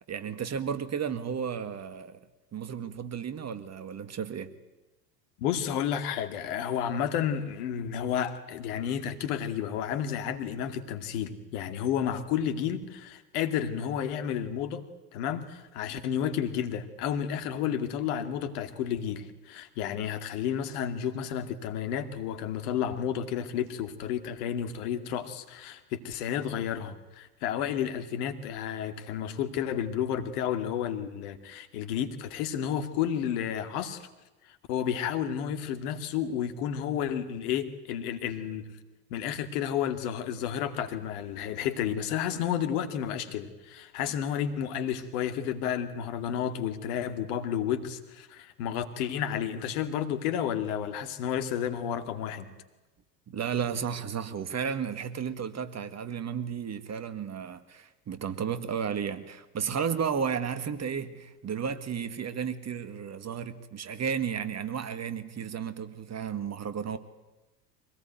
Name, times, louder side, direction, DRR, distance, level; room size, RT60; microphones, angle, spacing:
voice 1, 0.1-2.2 2.5-4.5 53.3-67.0, right 7 dB, 35° right, 2.0 m, -33 dB
voice 2, 5.4-14.8 15.1-34.1 34.4-38.6 39.1-52.5, left 9 dB, 65° left, 2.4 m, -31 dB
25.0 x 18.0 x 9.4 m
hypercardioid pair, 70°, 48 cm